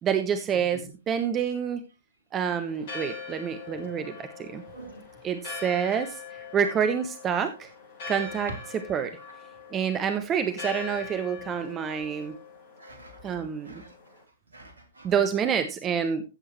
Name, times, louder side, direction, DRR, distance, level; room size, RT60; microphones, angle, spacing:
voice 1, 0.0-1.8 2.3-4.6 5.2-6.2 6.5-7.7 8.1-9.1 9.7-12.3 13.2-13.8 15.0-16.2, right 7 dB, 20° right, 1.0 m, -27 dB
voice 2, 0.5-0.9 4.7-5.0 8.3-8.7 11.9-12.0 12.8-13.4 13.6-13.9 14.5-15.1, right 2 dB, 70° right, 3.6 m, -44 dB
Church bell, 2.7-14.2, left 5 dB, 45° left, 7.1 m, -42 dB
15.0 x 7.9 x 3.1 m
figure-of-eight pair, 120°, 0 cm